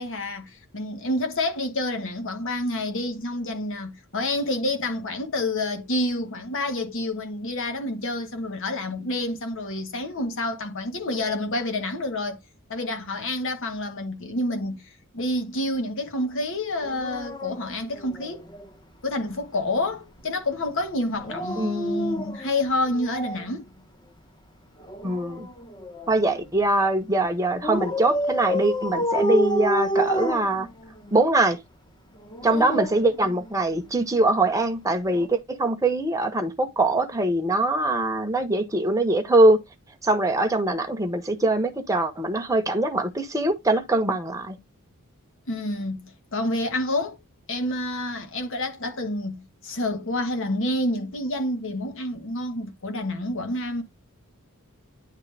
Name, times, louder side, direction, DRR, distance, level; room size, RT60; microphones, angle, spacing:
voice 1, 0.0-12.4 12.7-14.9 15.1-18.5 19.0-23.7 32.5-32.9 45.5-47.2 47.5-53.8, left 1 dB, 60° left, 1.2 m, -28 dB
Dog, 16.8-18.7 21.1-23.5 24.8-26.5 27.6-31.2 32.2-33.8 35.1-35.3, equal, 20° left, 0.9 m, -30 dB
voice 2, 21.6-22.1 25.0-25.5 26.1-30.7 31.1-31.6 32.4-39.6 40.0-44.6, right 2 dB, 15° right, 0.9 m, -23 dB
9.5 x 3.3 x 3.3 m
head